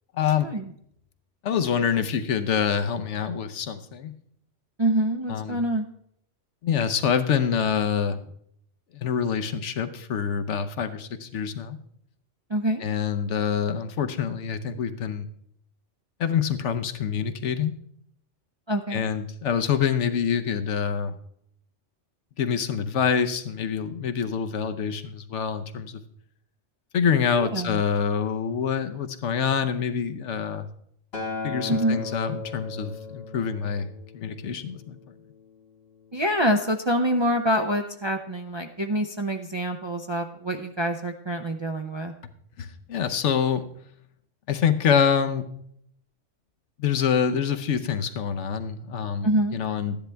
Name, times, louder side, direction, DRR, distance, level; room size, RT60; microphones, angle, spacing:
voice 1, 0.2-0.5 1.4-4.1 5.3-5.6 6.6-8.2 8.9-11.8 12.8-15.3 16.2-17.7 18.9-21.1 22.4-26.0 26.9-30.7 31.4-33.9 34.1-35.0 42.6-43.6 44.5-45.4 46.8-50.0, left 7 dB, 75° left, 9 dB, 1.1 m, -26 dB
voice 2, 4.8-5.9 12.5-12.8 18.7-19.1 27.3-27.8 31.7-32.0 36.1-42.1 49.2-49.6, right 1 dB, 35° right, 4 dB, 0.4 m, -26 dB
Acoustic guitar, 31.1-35.4 36.3-36.4, left 3 dB, 55° left, 2.1 m, -37 dB
13.0 x 10.5 x 3.4 m, 0.70 s
omnidirectional pair, 1.2 m